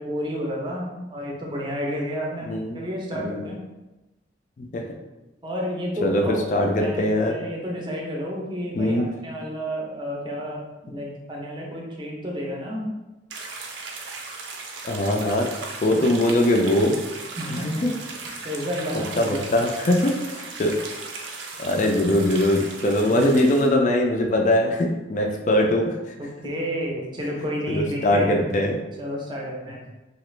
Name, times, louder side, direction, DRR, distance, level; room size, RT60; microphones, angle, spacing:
voice 1, 0.0-3.6 5.4-6.5 6.8-12.9 17.4-18.0 18.4-19.5 23.0-23.3 26.2-28.5 29.0-29.8, equal, 25° right, -2 dB, 0.5 m, -31 dB
voice 2, 2.4-2.8 3.2-3.5 4.6-4.8 6.0-7.3 8.8-9.1 14.8-15.5 15.8-17.0 17.5-17.9 18.3-18.4 19.2-20.8 21.6-26.0 27.7-28.8, left 1 dB, 40° left, 2 dB, 0.3 m, -21 dB
sound 1, 13.3-23.7, right 3 dB, 80° right, 0.5 m, -37 dB
2.9 x 2.4 x 3.1 m, 1.0 s
head